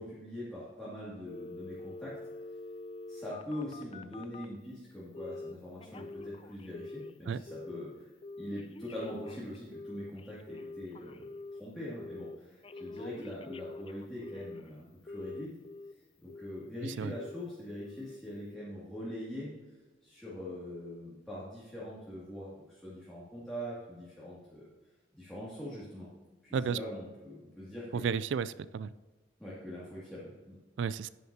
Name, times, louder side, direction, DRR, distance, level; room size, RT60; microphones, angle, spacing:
voice 1, 0.0-2.2 3.1-8.0 8.4-15.5 16.2-19.5 20.0-24.7 25.1-26.1 26.4-28.1 29.4-30.6, left 1 dB, ahead, -9 dB, 2.4 m, -43 dB
Telephone, 1.3-4.5 5.1-5.5 5.8-7.2 7.5-7.9 8.2-11.6 12.0-12.4 12.6-14.7 15.1-15.9 16.3-16.7 17.0-17.4 17.8-18.2 18.5-18.6, left 3 dB, 30° left, 0.4 m, -45 dB
voice 2, 27.9-28.9 30.8-31.1, right 6 dB, 85° right, 16 dB, 0.3 m, -32 dB
11.0 x 9.5 x 2.9 m, 1.3 s
head